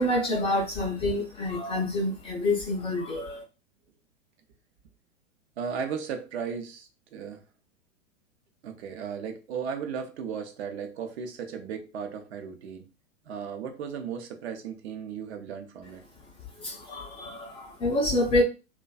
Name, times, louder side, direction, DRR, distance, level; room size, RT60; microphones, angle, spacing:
voice 1, 0.0-3.4 16.5-18.4, left 1 dB, 15° left, 0.4 m, -27 dB
voice 2, 5.6-7.4 8.6-12.9 13.2-16.0, right 7 dB, 55° right, 0.6 m, -36 dB
2.5 x 2.3 x 2.3 m
figure-of-eight pair, 100°, 39 cm